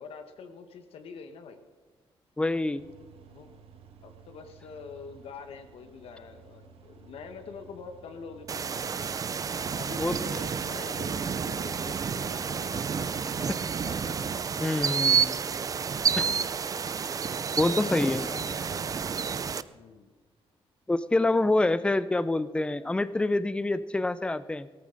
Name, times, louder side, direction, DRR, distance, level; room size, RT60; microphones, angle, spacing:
voice 1, 0.0-1.6 3.3-3.5 4.0-8.9 9.7-14.4 17.4-19.0 19.7-20.1 21.3-21.6, left 5 dB, 75° left, 7 dB, 1.3 m, -45 dB
voice 2, 2.4-2.8 10.0-10.2 14.6-15.4 16.1-16.3 17.6-18.2 20.9-24.7, left 2 dB, 10° left, 15 dB, 0.5 m, -26 dB
sound 1, 2.8-12.8, right 6 dB, 80° right, 1.4 m, -54 dB
sound 2, 8.5-19.6, right 6 dB, 35° right, 0.5 m, -30 dB
17.5 x 14.0 x 4.0 m, 1.4 s
cardioid pair, 125°, 10 cm